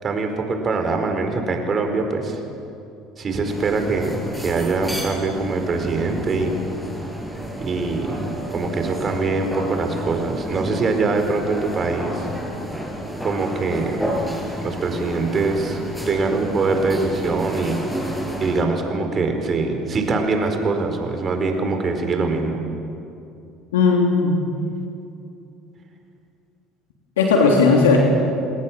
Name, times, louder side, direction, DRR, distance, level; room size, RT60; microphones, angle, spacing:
voice 1, 0.0-2.4 3.2-6.6 7.6-8.2 8.5-12.3 13.2-14.0 14.6-17.8 18.4-22.6, right 3 dB, 40° right, 5 dB, 4.7 m, -23 dB
sound 1, 3.4-18.6, equal, ahead, 6.5 m, -30 dB
voice 2, 23.7-24.4 27.2-28.0, left 4 dB, 85° left, 0 dB, 3.1 m, -16 dB
29.5 x 19.0 x 7.4 m, 2.7 s
hypercardioid pair, 70°, 0 cm